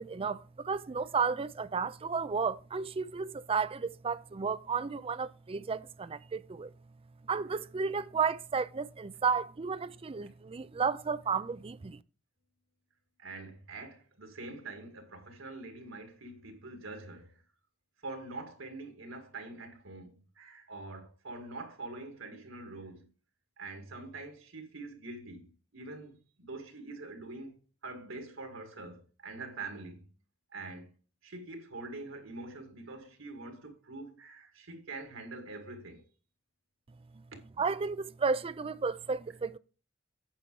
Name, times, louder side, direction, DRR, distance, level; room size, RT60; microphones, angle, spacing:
voice 1, 0.0-6.7 7.3-12.0 37.6-39.6, right 5 dB, 30° right, 0.4 m, -33 dB
voice 2, 13.2-17.4 18.0-23.1 23.6-27.6 27.8-30.1 30.5-30.9 31.2-36.0 37.3-37.4, right 3 dB, 90° right, 2.1 m, -45 dB
8.8 x 5.8 x 4.6 m
head